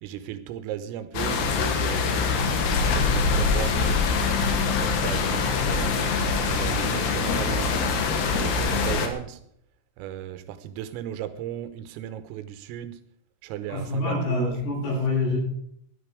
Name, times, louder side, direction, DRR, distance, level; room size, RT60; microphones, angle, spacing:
voice 1, 0.0-4.3 4.8-6.0 6.5-9.4 10.0-13.0 13.4-14.5, right 10 dB, 85° right, 3.6 m, -36 dB
sound 1, 1.1-9.1, left 4 dB, 65° left, 3.3 m, -24 dB
voice 2, 13.7-15.4, left 3 dB, 80° left, 11.0 m, -26 dB
16.5 x 11.5 x 5.0 m
omnidirectional pair, 6.0 m